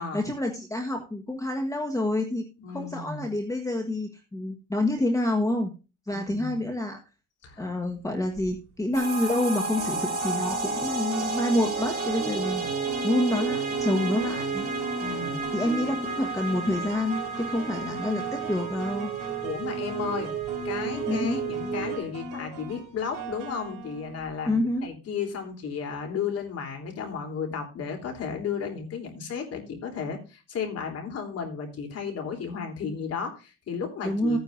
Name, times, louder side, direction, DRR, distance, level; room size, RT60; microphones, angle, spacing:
voice 1, 0.0-2.4 2.7-5.7 6.1-7.0 7.6-12.7 13.0-14.7 15.5-19.1 21.1-21.4 24.4-25.0 34.0-34.4, left 1 dB, 10° left, 3 dB, 1.3 m, -28 dB
voice 2, 2.6-3.2 6.1-6.6 7.4-7.7 15.0-15.5 19.4-20.3 20.6-34.4, left 6 dB, 50° left, 3 dB, 3.3 m, -34 dB
sound 1, 8.1-8.5 9.7-24.6, right 2 dB, 70° right, 4.7 m, -37 dB
sound 2, 8.9-22.0, right 5 dB, 25° right, 3.0 m, -32 dB
15.0 x 9.5 x 2.6 m, 0.30 s
cardioid pair, 135°, 32 cm